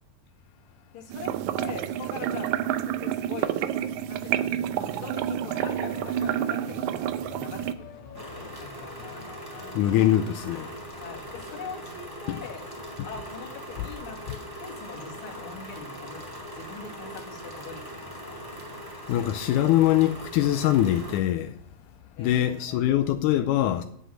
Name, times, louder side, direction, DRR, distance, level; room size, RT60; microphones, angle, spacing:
voice 1, 0.9-3.6 4.1-6.8 7.3-9.4 11.0-12.6 13.1-16.3 16.5-18.4 22.2-23.0, left 5 dB, 45° left, 2.7 m, -42 dB
sound 1, 1.1-7.7, right 11 dB, 80° right, 1.9 m, -29 dB
sound 2, 5.5-12.0, left 6 dB, 65° left, 1.1 m, -47 dB
sound 3, 8.1-21.2, equal, 10° right, 1.9 m, -40 dB
voice 2, 9.8-10.7 12.3-12.4 19.1-21.6 22.2-23.8, left 12 dB, 85° left, 2.2 m, -23 dB
10.0 x 7.9 x 6.2 m
omnidirectional pair, 3.5 m